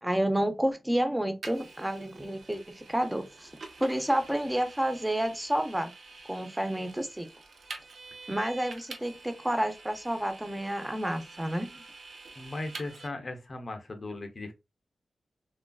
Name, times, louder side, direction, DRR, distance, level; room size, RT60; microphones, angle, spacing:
voice 1, 0.0-3.5 3.8-5.9 6.3-7.3 8.3-11.7, right 1 dB, 10° right, 0.5 m, -30 dB
Vehicle, 1.4-13.1, right 3 dB, 75° right, 0.5 m, -47 dB
voice 2, 12.4-14.5, left 2 dB, 45° left, 0.5 m, -37 dB
3.0 x 2.4 x 2.2 m
wide cardioid pair, 130°, 0 cm